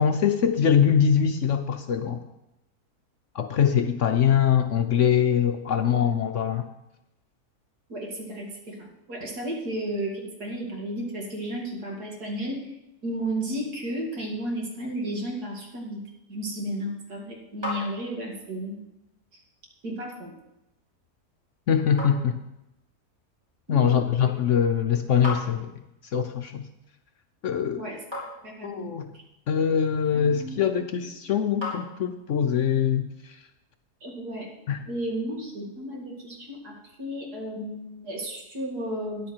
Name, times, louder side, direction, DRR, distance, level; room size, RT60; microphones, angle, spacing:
voice 1, 0.0-2.2 3.3-6.6 21.7-22.3 23.7-25.7 26.1-26.6 27.4-27.8 28.6-29.1 29.5-33.1 34.7-34.8, left 8 dB, 60° left, 7 dB, 0.9 m, -23 dB
voice 2, 5.8-6.3 7.9-12.7 13.0-16.0 16.3-18.8 19.3-19.4 19.8-20.3 23.7-24.3 27.7-28.0 28.4-28.9 29.1-29.2 30.1-30.8 34.0-34.5 34.9-39.3, right 1 dB, 80° right, -1 dB, 2.9 m, -33 dB
sound 1, 17.2-32.5, left 2 dB, 15° right, 4.0 m, -43 dB
13.5 x 10.0 x 4.5 m, 0.91 s
omnidirectional pair, 1.6 m